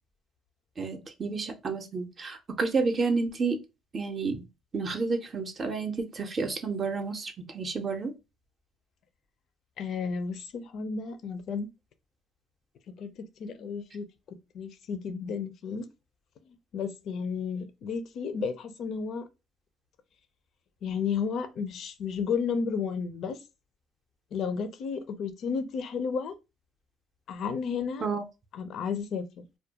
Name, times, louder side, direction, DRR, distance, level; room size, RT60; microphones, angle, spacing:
voice 1, 0.8-3.6 3.9-4.5 4.7-8.1 28.0-28.2, right 4 dB, 40° right, 0.5 m, -30 dB
voice 2, 9.8-11.7 13.0-14.1 14.5-15.9 16.5-19.3 20.8-23.4 24.3-26.3 27.3-28.1 28.5-29.4, left 6 dB, 65° left, 0.4 m, -32 dB
2.3 x 2.1 x 2.7 m
cardioid pair, 95°, 0 cm